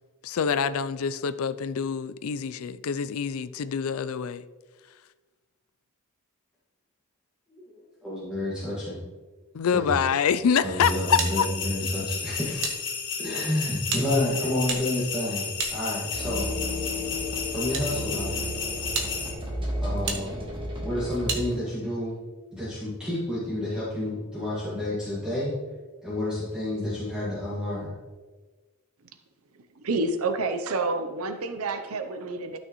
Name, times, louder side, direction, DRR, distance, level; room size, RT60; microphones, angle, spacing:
voice 1, 0.2-4.4 9.5-11.5, left 7 dB, 70° left, 14 dB, 0.4 m, -26 dB
voice 2, 7.5-9.0 9.7-10.0 10.6-12.7 13.2-16.5 17.5-18.5 19.8-20.4 20.8-22.2 22.5-25.5 26.0-27.9, left 1 dB, 5° right, -9 dB, 1.8 m, -30 dB
sound 1, 10.8-19.3, left 6 dB, 55° left, 1.6 m, -33 dB
sound 2, 11.2-12.8 13.0-13.1 13.8-16.3 17.1-17.9 18.4-18.5 18.9-19.1 20.1-20.2 21.3-21.4, right 5 dB, 60° right, 1.2 m, -33 dB
sound 3, 16.1-21.4, left 1 dB, 25° right, 1.5 m, -32 dB
voice 3, 29.8-32.6, right 3 dB, 75° right, 8 dB, 0.6 m, -28 dB
12.0 x 6.3 x 3.0 m, 1.3 s
head